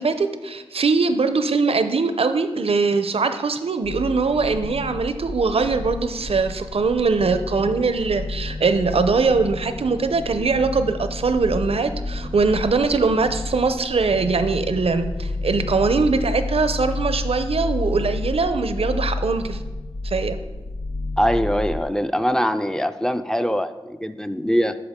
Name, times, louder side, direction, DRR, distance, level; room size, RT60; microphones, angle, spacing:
voice 1, 0.0-19.6 20.0-20.4, right 4 dB, 70° right, 10 dB, 0.6 m, -21 dB
sound 1, 3.8-21.8, left 2 dB, 80° left, 0.8 m, -30 dB
voice 2, 21.2-24.8, equal, 5° left, 10 dB, 0.4 m, -22 dB
11.5 x 4.6 x 3.6 m, 1.2 s
cardioid pair, 45°, 10 cm